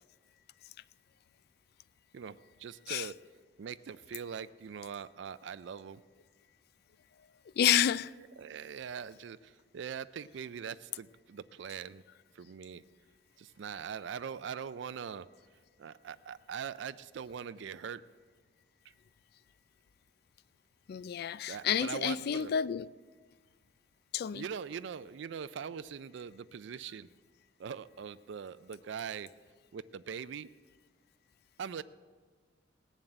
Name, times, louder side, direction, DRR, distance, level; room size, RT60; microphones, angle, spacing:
voice 1, 2.1-3.1 3.6-6.0 8.4-12.0 12.3-12.8 13.4-15.3 15.8-18.0 21.5-22.5 24.3-27.1 27.6-29.3 29.7-30.5 31.6-31.8, right 7 dB, 65° right, 0.4 m, -42 dB
voice 2, 7.6-8.1 20.9-22.9 24.1-24.5, left 9 dB, 55° left, 0.3 m, -29 dB
17.5 x 7.3 x 7.9 m
head